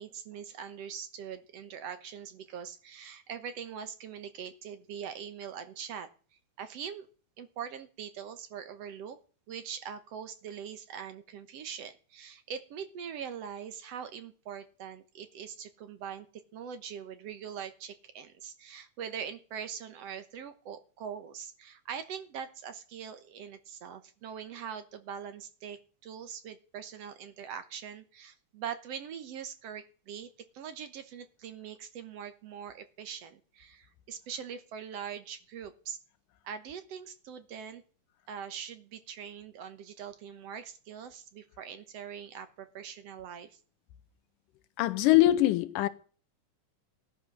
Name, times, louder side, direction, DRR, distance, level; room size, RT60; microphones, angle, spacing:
voice 1, 0.0-6.1 6.6-7.1 7.4-9.2 9.5-16.3 16.5-30.3 30.5-36.0 36.4-37.8 38.3-43.6, right 8 dB, 60° right, 1.9 m, -42 dB
voice 2, 44.8-45.9, left 15 dB, 90° left, 2.5 m, -23 dB
16.5 x 11.0 x 6.2 m
omnidirectional pair, 3.6 m